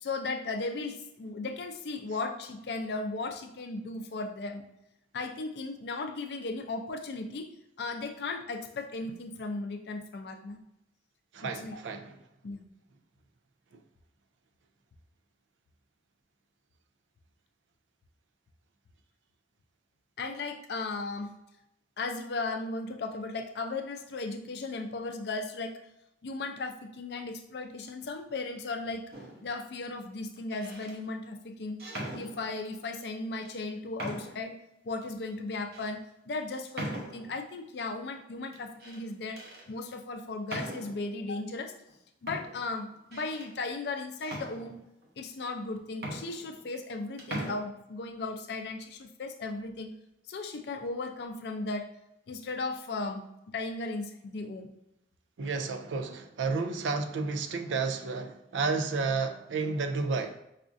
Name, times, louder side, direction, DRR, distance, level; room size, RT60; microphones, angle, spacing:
voice 1, 0.0-4.6 5.1-7.5 7.8-10.6 11.5-11.8 12.4-12.7 20.2-21.3 22.0-25.7 26.2-29.0 29.4-31.8 32.1-34.6 34.8-39.4 39.7-41.7 42.2-44.7 45.2-49.9 50.3-51.9 52.3-53.2 53.5-54.7, left 3 dB, 65° left, 5 dB, 0.4 m, -36 dB
voice 2, 11.3-12.2 55.4-60.4, right 4 dB, 90° right, 7 dB, 0.4 m, -31 dB
sound 1, 29.1-29.6 30.4-31.0 31.8-32.8 33.4-33.5 34.0-34.5 35.0-35.1 35.7-35.9 36.7-37.4 38.5-39.0 39.4-39.7 40.5-41.1 41.9-42.0 42.3-43.5 44.2-45.1 45.6-45.7 45.9-46.9 47.2-47.6, right 1 dB, 55° right, 0.7 m, -40 dB
4.9 x 2.4 x 2.5 m, 0.84 s
head